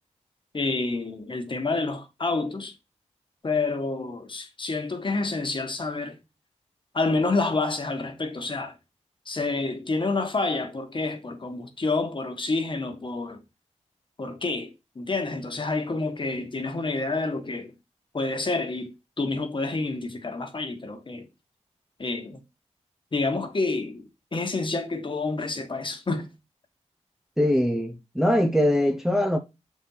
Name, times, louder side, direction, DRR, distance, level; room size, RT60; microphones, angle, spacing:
voice 1, 0.5-2.7 3.4-6.2 6.9-8.7 9.3-13.4 14.2-17.7 18.1-21.3 22.0-22.4 23.1-26.3, left 3 dB, 40° left, 1.4 m, -28 dB
voice 2, 27.4-29.4, left 1 dB, 5° right, 0.7 m, -22 dB
6.9 x 4.3 x 3.9 m
cardioid pair, 75°, 12 cm